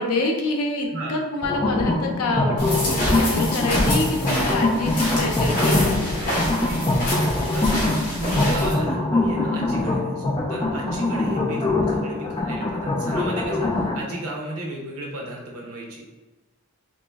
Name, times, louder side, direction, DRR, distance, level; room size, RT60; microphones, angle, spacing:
voice 1, 0.0-6.3 10.8-11.1, left 2 dB, 90° left, 2 dB, 0.6 m, -27 dB
sound 1, 1.4-14.0, left 2 dB, 20° left, 0.3 m, -23 dB
sound 2, 2.6-8.7, equal, 35° left, 1.2 m, -27 dB
voice 2, 7.1-7.7 8.1-16.0, right 1 dB, 85° right, -1 dB, 0.9 m, -33 dB
3.0 x 2.9 x 3.4 m, 1.2 s
head